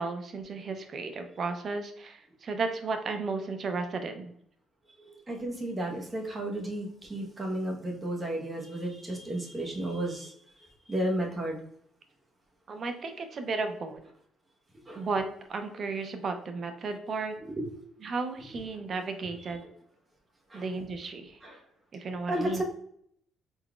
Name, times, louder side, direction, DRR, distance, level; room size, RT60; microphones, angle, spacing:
voice 1, 0.0-4.3 12.7-14.0 14.9-15.2 15.5-17.4 18.0-19.7 20.5-21.4 21.9-22.6, right 4 dB, 40° right, 6 dB, 0.6 m, -34 dB
voice 2, 5.0-10.3 10.9-11.6 14.8-15.1 17.6-17.7 20.5-20.6 21.4-21.6 22.3-22.6, right 1 dB, 20° right, -1 dB, 1.1 m, -33 dB
4.1 x 3.9 x 2.4 m, 0.68 s
cardioid pair, 125°, 0 cm